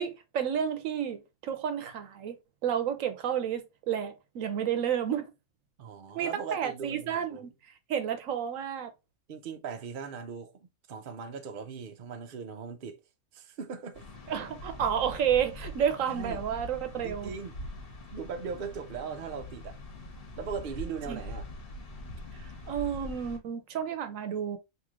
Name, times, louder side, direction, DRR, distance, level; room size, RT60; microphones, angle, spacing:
voice 1, 0.0-2.4 2.6-5.3 6.1-7.5 7.9-8.9 14.3-17.3 21.1-21.2 22.3-24.6, right 8 dB, 70° right, 1.0 m, -31 dB
voice 2, 5.8-7.4 9.3-13.0 13.3-14.0 16.1-16.4 17.0-17.5 18.1-19.8 20.4-21.5, right 6 dB, 55° right, 0.6 m, -39 dB
sound 1, 13.9-23.4, left 1 dB, 45° left, 1.2 m, -43 dB
3.1 x 2.8 x 3.6 m
omnidirectional pair, 1.4 m